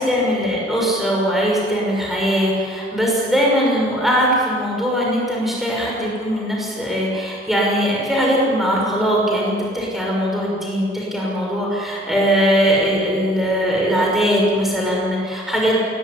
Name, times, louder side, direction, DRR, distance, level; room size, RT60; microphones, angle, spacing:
voice 1, 0.0-15.8, equal, ahead, -4 dB, 6.2 m, -20 dB
27.5 x 18.5 x 10.0 m, 2.3 s
head